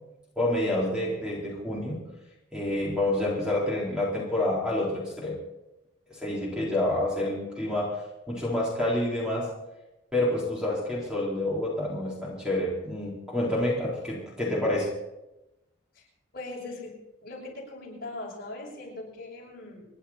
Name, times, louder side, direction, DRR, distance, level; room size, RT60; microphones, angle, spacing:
voice 1, 0.4-2.0 2.5-5.4 6.1-8.0 8.3-9.5 10.1-14.9, left 1 dB, 5° right, -5 dB, 4.1 m, -28 dB
voice 2, 16.3-16.9 17.2-19.9, left 2 dB, 50° left, -3 dB, 6.3 m, -40 dB
28.0 x 11.0 x 4.3 m, 0.94 s
head